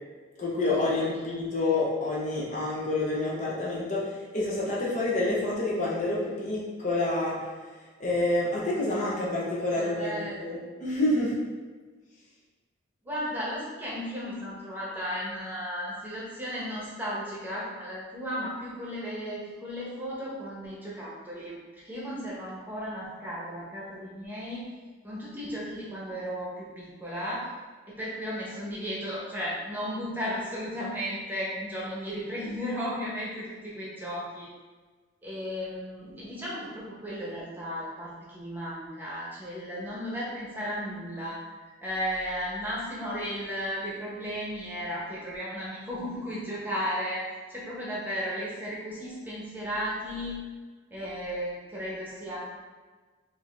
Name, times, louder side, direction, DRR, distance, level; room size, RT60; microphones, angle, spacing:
voice 1, 0.4-7.5 8.0-11.3, left 2 dB, 40° left, -6 dB, 0.9 m, -28 dB
voice 2, 9.8-10.4 13.0-24.7 25.0-27.5 27.9-34.5 35.2-47.2 47.5-50.4 50.9-52.4, equal, 10° right, -7 dB, 1.1 m, -35 dB
5.4 x 2.8 x 3.3 m, 1.4 s
head